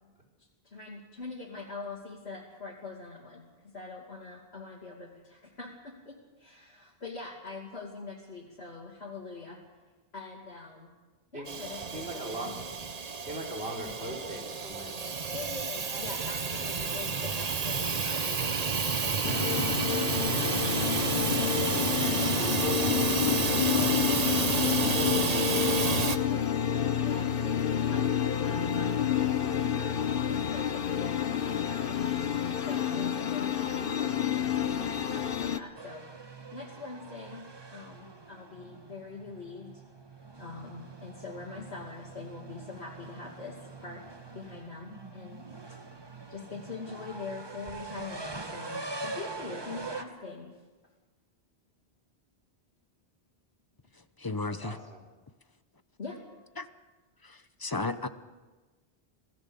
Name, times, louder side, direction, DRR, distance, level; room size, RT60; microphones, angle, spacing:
voice 1, 0.6-9.6 10.1-10.9 11.3-12.5 15.3-23.2 23.5-26.6 27.0-30.0 30.4-36.1 36.5-37.5 37.7-39.8 40.4-44.0 44.3-45.8 46.3-50.5 56.0-56.2, left 3 dB, 85° left, -4 dB, 3.0 m, -44 dB
Hiss / Toilet flush / Trickle dribble, 11.5-26.2, right 5 dB, 40° right, 1.0 m, -30 dB
voice 2, 11.9-12.5 13.2-15.1 15.8-16.0 54.6-55.0, right 1 dB, 75° right, 2 dB, 4.7 m, -39 dB
sound 1, 19.2-35.6, left 9 dB, 60° left, 1.1 m, -29 dB
sound 2, 35.8-50.0, right 3 dB, 25° right, 1.2 m, -43 dB
voice 3, 54.2-54.8 56.6-56.7 57.6-58.1, left 3 dB, 20° left, 11 dB, 0.9 m, -32 dB
27.5 x 17.5 x 7.1 m, 1.3 s
omnidirectional pair, 1.1 m